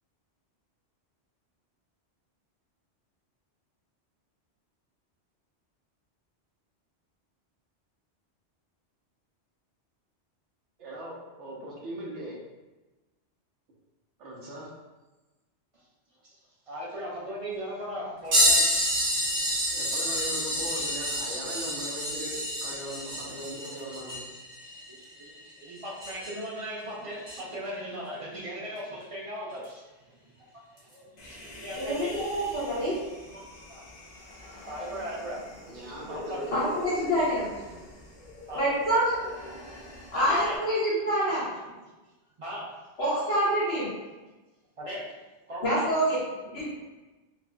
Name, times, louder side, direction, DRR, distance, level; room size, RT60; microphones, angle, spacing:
voice 1, 10.8-12.4 14.2-14.7 19.7-24.3 35.7-36.5 37.7-37.8, right 1 dB, 85° right, -3 dB, 1.2 m, -39 dB
voice 2, 16.7-19.1 21.4-21.7 24.9-25.3 25.6-30.5 30.8-32.4 33.3-33.9 34.7-35.4 36.1-36.5 37.7-37.9 38.5-38.7 40.1-40.6 41.7-41.8 42.4-42.7 44.8-45.1 45.5-45.9, equal, 35° right, -5 dB, 0.8 m, -38 dB
sound 1, 18.3-26.5 27.2-27.4 29.6-29.7 30.8-30.9 32.0-32.1, equal, 70° right, 1.9 m, -28 dB
Human voice, 31.2-40.6, left 1 dB, 45° left, 0.6 m, -43 dB
voice 3, 31.8-32.9 36.5-37.5 38.5-39.1 40.1-41.4 43.0-43.9 45.6-46.2 46.5-46.7, equal, 65° left, -12 dB, 1.3 m, -26 dB
4.5 x 2.7 x 2.3 m, 1.1 s
omnidirectional pair, 1.2 m